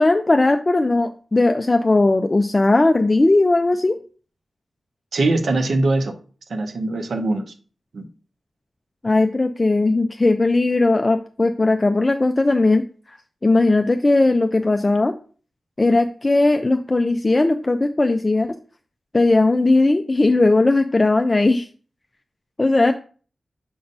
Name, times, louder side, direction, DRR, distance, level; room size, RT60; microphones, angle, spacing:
voice 1, 0.0-4.0 9.0-12.8 13.1-13.2 13.4-15.1 15.8-18.6 19.1-21.7 22.6-22.9, left 2 dB, 30° left, 7 dB, 0.3 m, -18 dB
voice 2, 5.1-6.1 6.5-7.4 7.9-8.0, right 2 dB, 75° right, 6 dB, 0.8 m, -21 dB
6.8 x 2.6 x 5.3 m, 0.40 s
wide cardioid pair, 95°, 0 cm